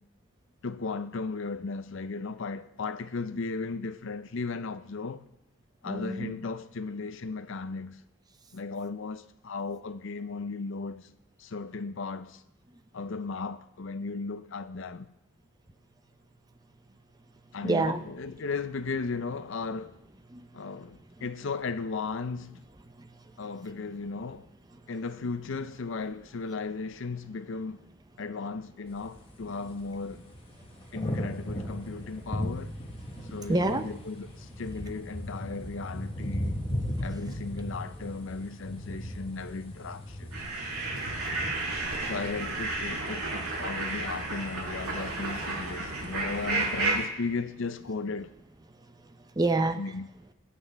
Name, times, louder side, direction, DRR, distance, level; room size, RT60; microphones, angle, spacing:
voice 1, 0.6-5.3 5.8-8.0 8.5-11.1 11.4-12.4 12.9-15.1 17.5-20.0 20.5-22.6 23.4-24.5 24.9-27.8 28.2-30.3 30.9-32.8 33.2-36.5 37.0-40.4 42.1-48.3 49.8-50.1, left 4 dB, 60° left, 0.5 m, -36 dB
voice 2, 5.9-6.3 17.6-18.0 20.3-20.5 23.0-23.1 33.5-33.8 40.8-40.9 41.2-42.1 49.4-49.8, right 2 dB, 20° right, 0.6 m, -29 dB
sound 1, 28.9-47.1, equal, 25° left, 1.3 m, -38 dB
sound 2, 40.3-46.9, right 3 dB, 90° right, 5.4 m, -32 dB
22.0 x 8.6 x 3.4 m
head